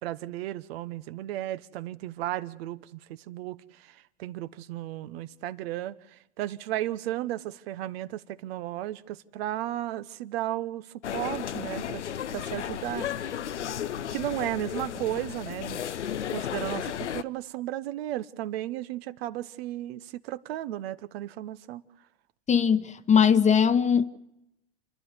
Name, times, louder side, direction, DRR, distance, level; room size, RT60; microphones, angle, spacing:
voice 1, 0.0-12.0 12.3-13.3 14.1-15.8 16.3-21.8, right 14 dB, 60° right, 1.1 m, -34 dB
sound 1, 11.0-17.2, left 9 dB, 90° left, 0.8 m, -34 dB
voice 2, 22.5-24.1, left 7 dB, 20° left, 1.1 m, -20 dB
29.0 x 11.5 x 9.8 m
hypercardioid pair, 100°, 34 cm